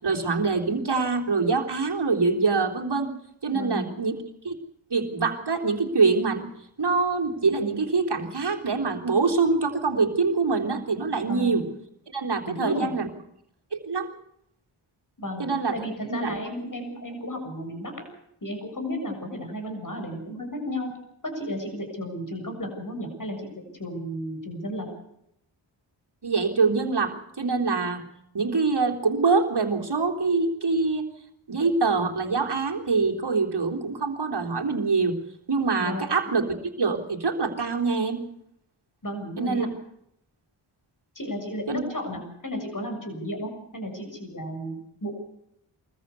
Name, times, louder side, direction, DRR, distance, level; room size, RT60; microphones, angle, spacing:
voice 1, 0.0-3.1 3.4-4.1 4.4-4.5 4.9-6.4 6.8-11.6 12.1-13.1 13.7-14.1 15.4-15.8 16.1-16.4 26.2-28.0 28.3-31.0 31.5-35.2 35.5-36.4 36.8-38.2 39.4-39.7 41.7-41.8, right 4 dB, 55° right, 2 dB, 3.6 m, -24 dB
voice 2, 3.5-3.9 11.3-11.6 12.5-12.9 15.2-15.5 15.7-18.1 18.4-20.9 21.2-23.5 23.8-24.9 35.8-36.1 39.0-39.7 41.2-45.1, equal, 40° left, 5 dB, 7.2 m, -33 dB
23.5 x 14.5 x 8.3 m, 0.76 s
cardioid pair, 45°, 49 cm